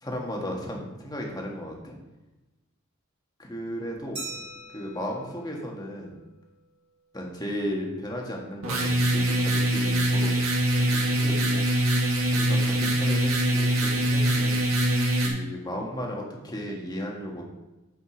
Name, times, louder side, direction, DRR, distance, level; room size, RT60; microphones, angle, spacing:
voice 1, 0.0-2.0 3.4-4.2 4.7-6.1 7.1-10.4 10.8-11.6 12.3-14.6 15.2-17.4, equal, 20° left, 0 dB, 1.6 m, -35 dB
Glass, 4.2-6.6, right 2 dB, 30° right, 3.2 m, -42 dB
sound 1, 8.6-15.3, right 1 dB, 80° right, 1.8 m, -23 dB
8.8 x 5.3 x 5.0 m, 1.1 s
head